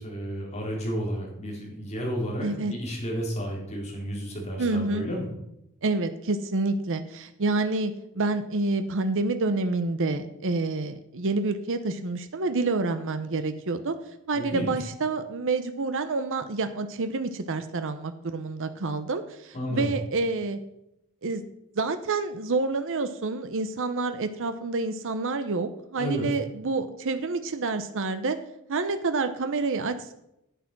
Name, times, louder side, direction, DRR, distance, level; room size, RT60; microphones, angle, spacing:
voice 1, 0.0-5.3 14.3-14.7 19.5-19.9 26.0-26.3, equal, 30° left, -2 dB, 3.7 m, -32 dB
voice 2, 2.4-2.7 4.6-5.0 5.8-14.0 14.3-20.6 21.2-21.4 21.7-28.4 28.7-30.1, right 3 dB, 60° right, 9 dB, 0.8 m, -28 dB
10.0 x 8.4 x 6.0 m, 0.83 s
head